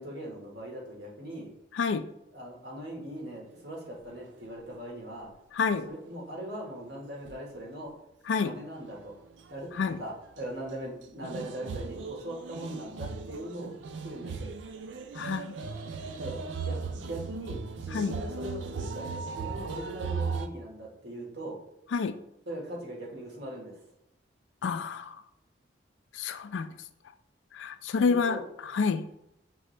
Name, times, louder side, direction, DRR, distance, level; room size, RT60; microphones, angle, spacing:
voice 1, 0.0-1.5 2.3-5.3 5.8-7.9 8.4-9.1 9.5-13.7 14.0-14.5 16.2-16.4 16.6-21.6 22.5-23.8 28.0-28.4, right 1 dB, 65° right, -2 dB, 1.5 m, -40 dB
voice 2, 1.7-2.1 5.5-5.9 8.3-8.5 9.7-10.0 15.1-15.5 17.9-18.1 21.9-22.2 24.6-25.2 26.1-26.7 27.5-29.0, left 5 dB, 85° left, 11 dB, 0.4 m, -29 dB
sound 1, 7.3-7.4 8.8-9.1 9.4-9.5 11.2-20.5, right 5 dB, 80° right, 0.4 m, -37 dB
6.1 x 2.7 x 3.2 m, 0.81 s
head